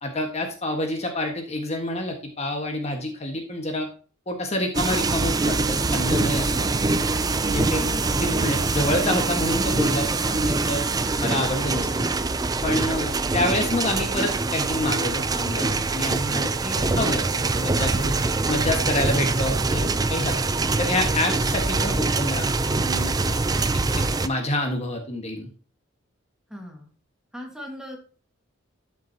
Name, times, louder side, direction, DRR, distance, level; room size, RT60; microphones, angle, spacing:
voice 1, 0.0-3.9 4.3-6.7 7.5-7.8 8.1-10.9 11.2-11.9 12.6-18.2 18.5-20.4 20.8-23.3 24.0-25.5, left 1 dB, 30° left, 3 dB, 1.5 m, -28 dB
sound 1, 4.7-24.3, right 3 dB, 20° right, 0.4 m, -24 dB
voice 2, 7.8-8.2 26.5-26.9 27.3-28.0, equal, 5° right, 0 dB, 1.7 m, -38 dB
12.5 x 6.2 x 2.8 m, 0.38 s
head